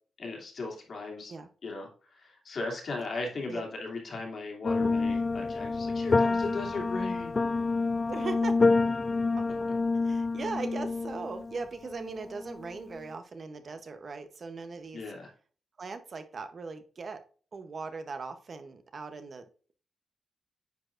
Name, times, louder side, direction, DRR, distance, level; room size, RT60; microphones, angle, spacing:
voice 1, 0.2-1.3 1.6-7.4 14.9-15.3, left 3 dB, 60° left, 0 dB, 2.3 m, -37 dB
sound 1, 4.6-13.0, left 3 dB, 35° left, 0.3 m, -28 dB
voice 2, 8.1-8.6 9.4-9.5 10.0-15.0 15.8-17.2 17.5-19.5, right 4 dB, 50° right, 9 dB, 0.7 m, -39 dB
9.2 x 4.6 x 2.5 m, 0.40 s
cardioid pair, 90°, 0 cm